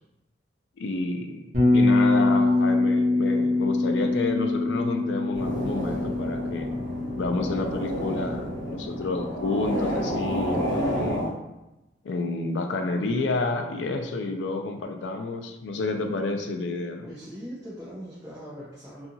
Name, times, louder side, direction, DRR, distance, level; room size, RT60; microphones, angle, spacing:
voice 1, 0.8-1.4 1.7-6.7 7.2-11.3 12.0-17.1, left 3 dB, 80° left, 5 dB, 0.3 m, -29 dB
Bass guitar, 1.5-9.6, left 2 dB, 45° right, 0.8 m, -25 dB
sound 1, 5.3-11.3, equal, 20° left, 1.0 m, -30 dB
voice 2, 17.0-19.1, equal, 15° right, -8 dB, 0.4 m, -40 dB
2.7 x 2.4 x 2.6 m, 0.98 s
head